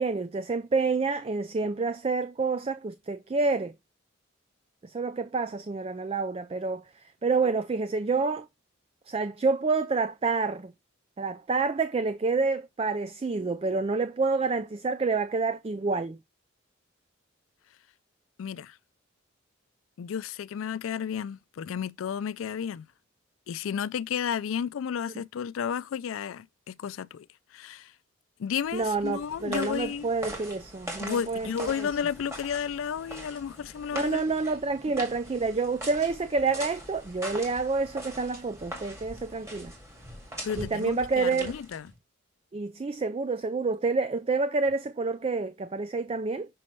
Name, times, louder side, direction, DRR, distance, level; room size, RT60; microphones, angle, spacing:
voice 1, 0.0-3.7 4.8-6.8 7.2-8.5 9.1-10.7 11.2-16.2 28.7-31.9 33.9-39.7 40.6-41.5 42.5-46.5, right 4 dB, 30° right, 0.4 m, -28 dB
voice 2, 18.4-18.8 20.0-22.9 23.5-27.3 27.5-27.9 28.4-30.1 31.0-34.2 34.9-35.0 40.4-41.9, left 7 dB, 85° left, 0.4 m, -32 dB
sound 1, 28.7-42.0, right 1 dB, 15° right, 2.0 m, -42 dB
6.2 x 5.7 x 3.1 m
head